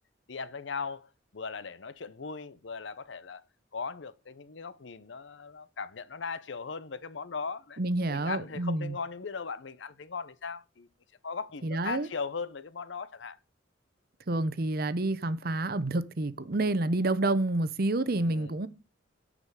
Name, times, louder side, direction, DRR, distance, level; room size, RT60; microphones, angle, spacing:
voice 1, 0.3-1.1 1.3-3.4 3.7-7.8 8.1-10.9 11.2-13.4 18.1-18.5, left 5 dB, 70° left, 0.7 m, -38 dB
voice 2, 7.8-8.9 11.6-12.1 14.3-18.7, right 2 dB, 50° right, 0.8 m, -28 dB
9.9 x 5.1 x 6.6 m
head